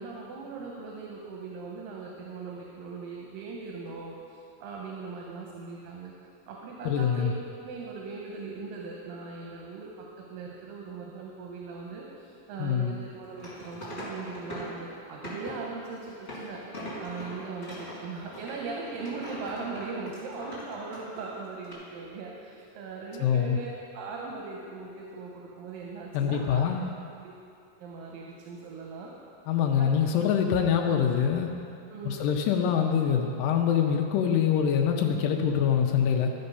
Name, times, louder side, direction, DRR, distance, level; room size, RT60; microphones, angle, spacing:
voice 1, 0.0-6.1 6.5-7.3 7.6-26.6 27.2-27.3 27.8-29.1 29.8-29.9 30.2-30.3 31.9-32.3, right 4 dB, 85° right, -2 dB, 2.5 m, -39 dB
voice 2, 6.9-7.3 12.6-12.9 23.2-23.6 26.1-26.9 29.5-31.5 32.1-36.3, left 8 dB, 85° left, 2 dB, 2.2 m, -24 dB
sound 1, 13.2-14.8 15.2-15.6 16.1-21.3 21.6-21.7, equal, 20° left, 2.3 m, -41 dB
13.0 x 4.3 x 5.4 m, 2.6 s
omnidirectional pair, 3.9 m